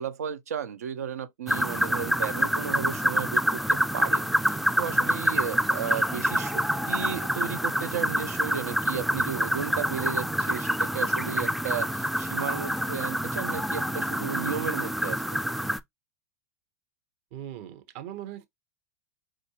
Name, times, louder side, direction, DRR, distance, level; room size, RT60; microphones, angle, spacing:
voice 1, 0.0-15.5, right 8 dB, 75° right, 0.5 m, -34 dB
sound 1, 1.5-15.8, equal, ahead, 0.3 m, -27 dB
voice 2, 17.3-18.5, right 11 dB, 55° right, 0.9 m, -39 dB
4.7 x 2.5 x 2.8 m
hypercardioid pair, 90°, 9 cm